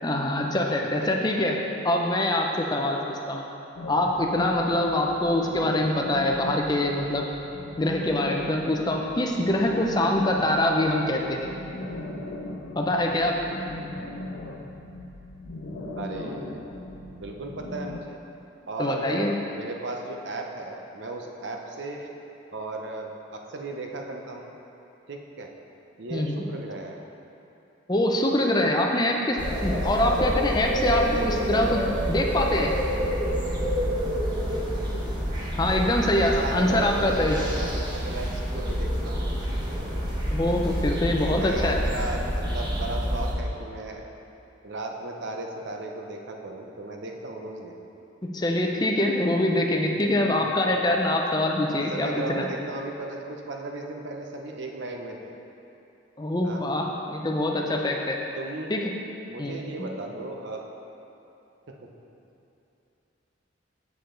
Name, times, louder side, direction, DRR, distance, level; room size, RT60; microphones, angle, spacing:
voice 1, 0.0-1.6 1.8-3.5 3.9-7.3 7.8-11.5 12.8-13.6 18.8-19.3 26.1-26.4 27.9-32.7 35.6-37.4 40.3-41.8 48.2-52.5 56.2-58.2 58.7-58.8 59.4-59.9, left 1 dB, 20° left, 1 dB, 0.5 m, -24 dB
sound 1, 3.7-18.0, left 2 dB, 85° left, 0.6 m, -38 dB
voice 2, 16.0-16.6 17.1-18.2 18.7-22.1 22.5-24.5 25.1-25.5 26.0-27.0 31.1-31.7 36.1-39.4 41.3-44.1 44.6-47.7 50.0-50.4 51.6-55.3 56.4-56.6 58.4-58.7 59.3-60.7 61.7-61.8, right 2 dB, 65° right, 2 dB, 0.7 m, -36 dB
sound 2, 29.4-43.3, equal, 20° right, 1.0 m, -28 dB
7.0 x 6.7 x 3.8 m, 2.9 s
head